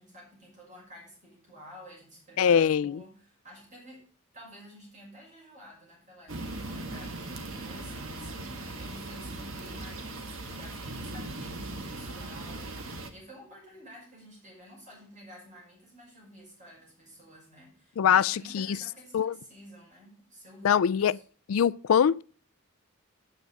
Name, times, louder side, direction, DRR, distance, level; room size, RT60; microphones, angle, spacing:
voice 1, 0.0-4.1 4.3-21.2, equal, 35° right, 6.0 m, -51 dB
voice 2, 2.4-3.0 18.0-18.8 19.1-19.3 20.6-21.2 21.5-22.2, left 8 dB, 75° left, 0.4 m, -23 dB
sound 1, 6.3-13.1, right 2 dB, 70° right, 1.4 m, -39 dB
9.6 x 7.9 x 4.7 m
head